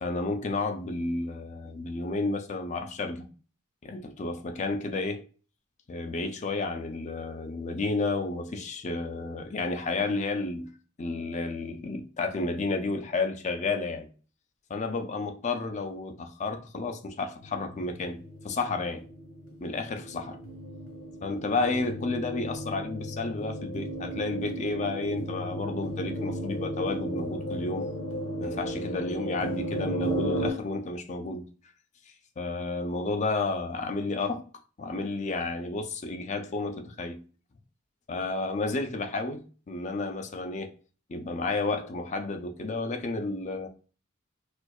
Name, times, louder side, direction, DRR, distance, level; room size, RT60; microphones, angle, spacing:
voice 1, 0.0-3.3 3.8-5.2 5.9-10.7 11.0-14.1 14.7-18.2 18.4-19.1 19.6-20.4 21.2-27.9 28.4-31.5 32.4-34.4 34.8-37.2 38.1-39.4 39.7-40.7 41.1-43.7, left 3 dB, 35° left, 0.4 m, -31 dB
sound 1, 17.4-30.5, right 1 dB, 85° left, 1.0 m, -35 dB
4.3 x 2.3 x 2.3 m
head